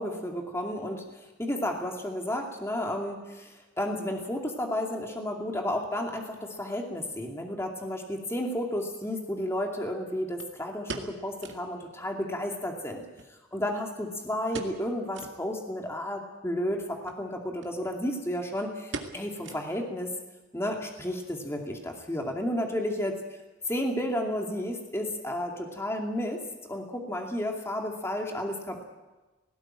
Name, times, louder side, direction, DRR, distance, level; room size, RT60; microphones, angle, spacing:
voice 1, 0.0-13.0 13.3-20.1 20.5-23.1 23.7-28.8, left 1 dB, 15° left, 1 dB, 2.5 m, -32 dB
sound 1, 8.3-8.4 10.4-11.7 12.0-12.1 12.4-12.5 13.2-14.0 14.5-14.9 15.1-15.4 15.9-16.0 17.0-17.2 17.6-17.7 18.0-18.4 18.9-20.0 20.3-20.4 21.0-21.3 21.6-21.7, right 3 dB, 70° right, 2.1 m, -41 dB
19.0 x 16.5 x 9.0 m, 1.1 s
head